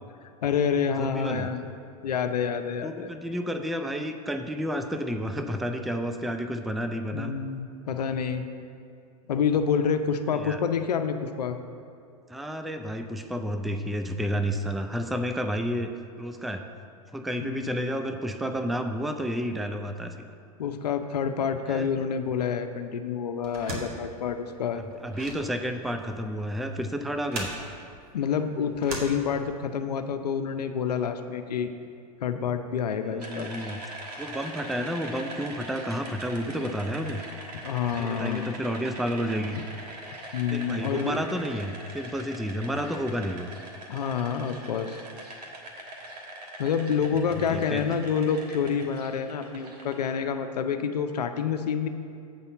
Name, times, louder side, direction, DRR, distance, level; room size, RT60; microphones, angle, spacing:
voice 1, 0.4-1.6 2.0-3.1 7.1-8.5 9.3-11.6 17.4-17.9 20.6-24.8 28.1-31.7 32.2-33.5 37.6-38.6 40.3-41.2 43.9-45.1 46.6-51.9, left 7 dB, 80° left, 8 dB, 0.6 m, -28 dB
voice 2, 1.0-1.5 2.8-7.3 10.3-10.6 12.3-15.9 16.2-16.7 17.1-20.3 21.7-21.9 24.7-27.5 33.0-33.8 34.2-37.2 37.9-39.6 40.5-43.5 47.4-47.8, equal, ahead, 7 dB, 0.3 m, -31 dB
sound 1, 23.4-29.8, right 2 dB, 65° right, 1.8 m, -39 dB
sound 2, 33.2-50.1, right 1 dB, 85° right, 1.4 m, -42 dB
8.0 x 4.2 x 6.9 m, 2.5 s
hypercardioid pair, 105°, 20 cm